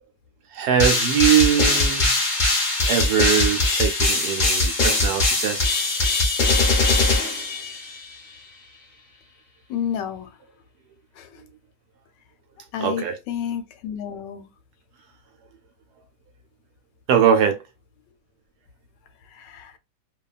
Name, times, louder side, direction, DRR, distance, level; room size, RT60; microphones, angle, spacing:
voice 1, 0.5-2.3 2.9-5.7 12.8-13.2 17.1-17.6, right 9 dB, 75° right, 1.1 m, -21 dB
sound 1, 0.8-8.1, left 2 dB, 55° left, 0.5 m, -21 dB
voice 2, 9.7-10.3 11.2-11.4 12.7-14.5 19.3-19.8, left 9 dB, 85° left, 1.2 m, -30 dB
2.8 x 2.2 x 2.3 m
omnidirectional pair, 1.9 m